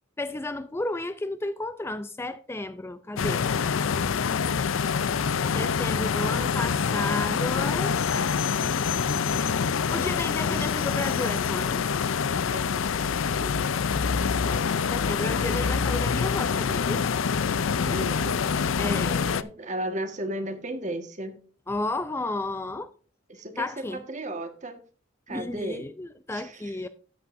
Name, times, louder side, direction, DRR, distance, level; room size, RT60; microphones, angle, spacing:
voice 1, 0.2-3.5 5.5-8.0 9.9-11.8 14.5-17.1 18.8-19.5 21.7-22.9 23.6-24.0 25.3-26.9, left 2 dB, 10° left, 0.4 m, -32 dB
sound 1, 3.2-19.4, left 6 dB, 80° left, 0.5 m, -26 dB
voice 2, 10.3-10.7 12.5-14.1 14.5-14.7 17.8-18.5 19.0-21.4 23.3-24.8 25.3-25.8 26.3-26.8, right 1 dB, 35° right, 1.5 m, -36 dB
13.0 x 8.6 x 2.6 m
head